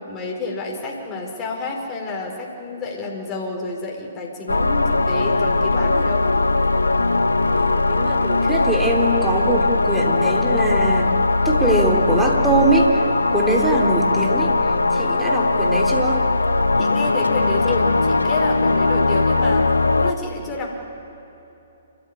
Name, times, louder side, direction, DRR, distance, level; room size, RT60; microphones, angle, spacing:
voice 1, 0.0-6.2 16.8-19.7 20.0-20.7, left 3 dB, 20° left, -2 dB, 4.7 m, -29 dB
sound 1, 4.5-20.1, left 3 dB, 85° left, 0.9 m, -19 dB
voice 2, 7.5-11.1 11.4-13.0 13.3-14.5 14.9-16.2, right 2 dB, 10° right, 1 dB, 3.3 m, -22 dB
28.0 x 14.0 x 9.9 m, 2.9 s
figure-of-eight pair, 130°, 0 cm